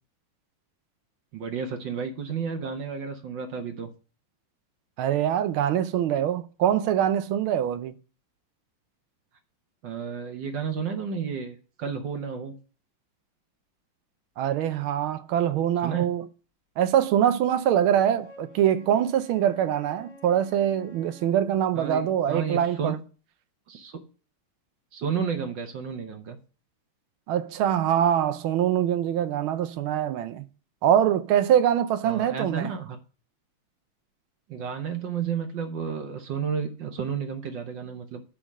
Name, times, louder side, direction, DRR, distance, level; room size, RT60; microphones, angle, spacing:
voice 1, 1.3-3.9 9.8-12.5 15.8-16.1 21.7-23.0 23.7-24.0 24.9-26.4 32.0-33.0 34.5-38.2, right 6 dB, 65° right, 1.6 m, -32 dB
voice 2, 5.0-7.9 14.4-16.2 16.8-23.0 27.3-30.4 30.8-32.7, right 10 dB, 80° right, 1.5 m, -24 dB
Wind instrument woodwind instrument, 17.9-21.4, left 1 dB, 85° left, 3.0 m, -49 dB
10.0 x 3.7 x 7.2 m
omnidirectional pair, 2.3 m